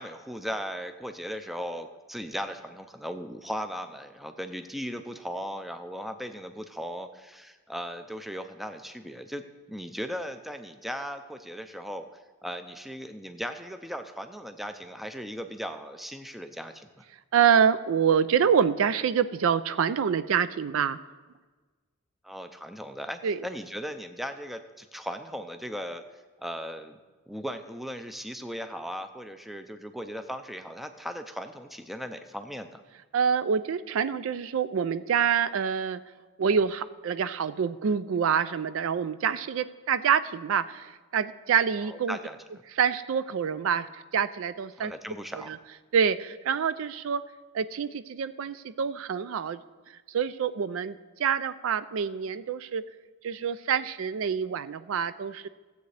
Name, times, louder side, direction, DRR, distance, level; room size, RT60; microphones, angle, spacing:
voice 1, 0.0-17.0 22.2-26.0 26.4-27.0 27.3-32.8 41.8-42.4 44.8-45.5, equal, ahead, 8 dB, 0.4 m, -37 dB
voice 2, 17.3-21.0 23.2-23.4 33.1-36.0 36.4-42.2 42.8-44.9 45.5-45.6 45.9-47.2 47.5-49.6 50.1-52.8 53.2-55.5, right 7 dB, 65° right, 13 dB, 0.4 m, -26 dB
16.0 x 7.9 x 3.3 m, 1.3 s
head